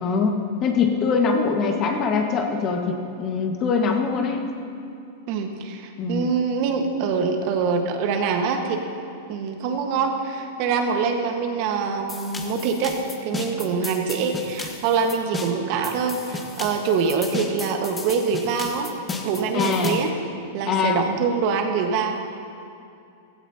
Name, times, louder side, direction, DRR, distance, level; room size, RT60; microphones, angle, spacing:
voice 1, 0.0-4.5 6.0-6.3 19.5-20.0 20.7-21.1, left 5 dB, 35° left, 3 dB, 1.5 m, -23 dB
voice 2, 5.3-8.8 9.3-13.0 13.2-18.9 19.2-20.1 20.5-22.2, right 5 dB, 50° right, 4 dB, 1.4 m, -24 dB
sound 1, 12.1-20.1, left 3 dB, 15° left, 1.3 m, -34 dB
15.5 x 15.0 x 2.9 m, 2.6 s
hypercardioid pair, 115°, 0 cm